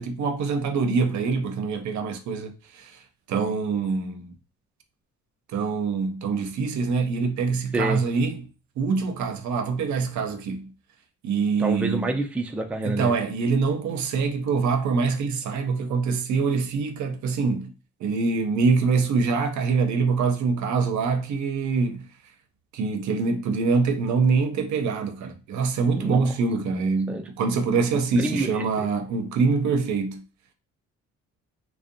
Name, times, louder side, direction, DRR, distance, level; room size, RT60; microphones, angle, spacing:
voice 1, 0.0-2.9 3.3-4.3 5.5-8.4 8.8-10.7 11.2-12.1 12.9-17.7 18.0-22.1 22.7-30.2, right 4 dB, 70° right, 0.6 m, -24 dB
voice 2, 11.6-13.1 26.0-26.3 27.1-27.3 28.2-28.9, right 2 dB, 5° right, 0.3 m, -28 dB
2.5 x 2.1 x 2.5 m
cardioid pair, 90°, 30 cm